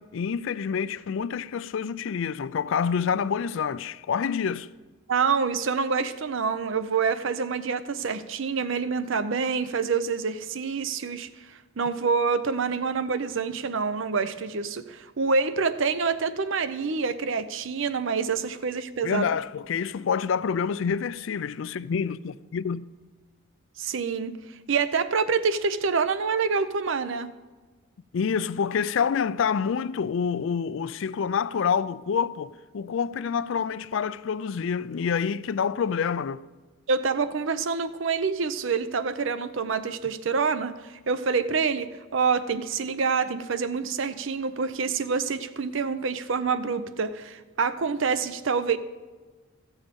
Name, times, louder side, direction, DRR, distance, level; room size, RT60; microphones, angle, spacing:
voice 1, 0.0-4.7 19.0-22.9 28.1-36.4, left 6 dB, 60° left, 0.4 m, -27 dB
voice 2, 5.1-19.3 23.8-24.4 24.7-27.3 36.9-48.8, right 5 dB, 60° right, 0.6 m, -27 dB
15.0 x 7.1 x 5.2 m
head